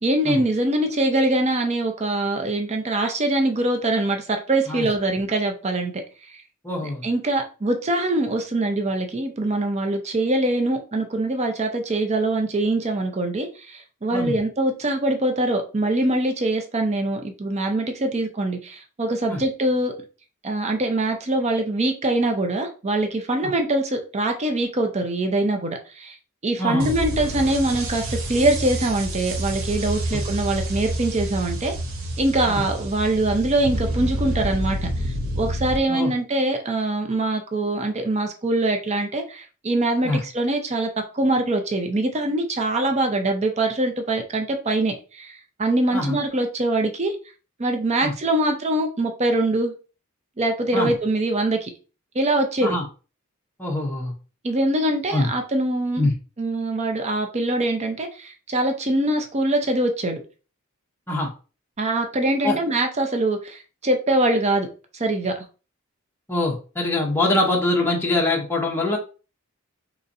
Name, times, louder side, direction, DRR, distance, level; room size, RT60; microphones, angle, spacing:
voice 1, 0.0-6.0 6.8-19.9 20.4-26.2 26.4-31.7 32.2-45.3 45.6-47.2 47.6-49.7 50.4-51.7 52.1-52.8 54.4-56.1 56.4-60.2 61.8-64.7 64.9-65.4, right 2 dB, 30° right, 4 dB, 0.6 m, -23 dB
voice 2, 6.6-7.0 14.1-14.3 19.3-19.4 26.6-26.9 32.5-32.6 35.9-36.1 40.0-40.2 45.9-46.2 48.0-48.1 50.7-50.9 52.6-52.8 53.6-54.1 55.1-55.3 56.0-56.1 61.1-61.3 62.4-62.6 66.3-69.0, left 2 dB, 10° left, -1 dB, 0.8 m, -23 dB
sound 1, 26.8-35.8, right 1 dB, 70° right, 0.7 m, -28 dB
4.0 x 3.0 x 2.6 m, 0.35 s
head